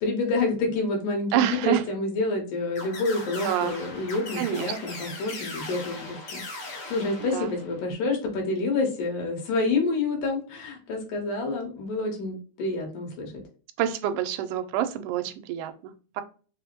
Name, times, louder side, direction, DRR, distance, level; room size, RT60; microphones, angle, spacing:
voice 1, 0.0-13.4, left 3 dB, 80° left, 1 dB, 2.6 m, -28 dB
voice 2, 1.3-1.8 3.4-3.8 4.4-4.7 7.3-7.5 13.8-16.2, right 11 dB, 90° right, 8 dB, 2.1 m, -27 dB
sound 1, 2.7-7.9, left 2 dB, 60° left, 1.1 m, -39 dB
5.3 x 2.1 x 2.9 m, 0.38 s
omnidirectional pair, 3.6 m